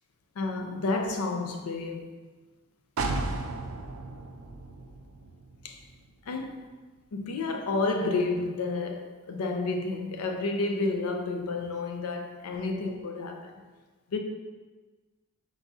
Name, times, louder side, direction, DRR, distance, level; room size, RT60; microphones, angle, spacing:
voice 1, 0.4-2.1 5.6-5.8 6.3-6.6 7.1-13.5 14.1-14.2, left 3 dB, 80° left, 0.5 m, -30 dB
sound 1, 3.0-6.7 7.1-7.2, right 3 dB, 65° right, 0.4 m, -35 dB
4.1 x 3.9 x 2.3 m
head